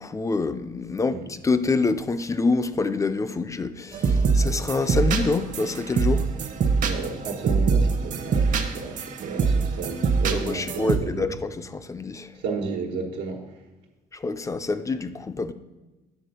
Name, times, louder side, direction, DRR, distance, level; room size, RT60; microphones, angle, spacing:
voice 1, 0.0-6.3 10.3-12.3 14.1-15.5, left 3 dB, 20° left, 0.4 m, -26 dB
sound 1, 3.9-11.0, right 4 dB, 50° right, 0.9 m, -24 dB
voice 2, 6.8-11.3 12.4-13.4, right 4 dB, 90° right, 1.4 m, -32 dB
9.1 x 3.6 x 6.7 m
cardioid pair, 110°, 17 cm